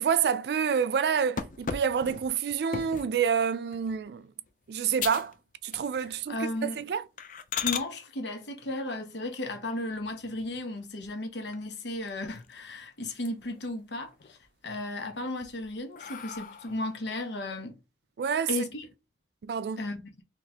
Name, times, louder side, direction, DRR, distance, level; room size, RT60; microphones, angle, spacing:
voice 1, 0.0-4.3 4.7-5.3 5.6-7.0 18.2-18.5 19.4-19.8, right 7 dB, 70° right, 0.3 m, -28 dB
sound 1, 1.4-3.2 3.7-4.0 4.5-4.6 5.0-5.3 5.6-6.2 6.5-6.7 7.2-7.9 9.9-10.6 11.0-11.1 11.5-11.6 11.9-12.7 13.1-13.7 14.1-14.7 15.2-16.9, left 7 dB, 45° left, 0.4 m, -37 dB
voice 2, 6.0-6.9 7.6-14.4 14.6-17.8 18.5-18.9 19.8-20.2, left 2 dB, 85° left, 0.9 m, -35 dB
4.0 x 3.0 x 2.8 m
head